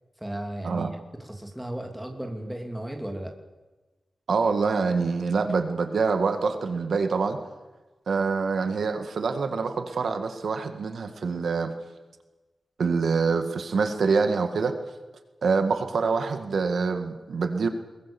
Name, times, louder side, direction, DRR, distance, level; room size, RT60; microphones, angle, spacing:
voice 1, 0.2-3.3, right 1 dB, 5° right, 3 dB, 2.8 m, -35 dB
voice 2, 4.3-7.4 8.1-11.7 12.8-14.7 15.4-17.7, right 4 dB, 70° right, 7 dB, 1.9 m, -25 dB
22.0 x 21.5 x 7.1 m, 1.2 s
wide cardioid pair, 165°, 0 cm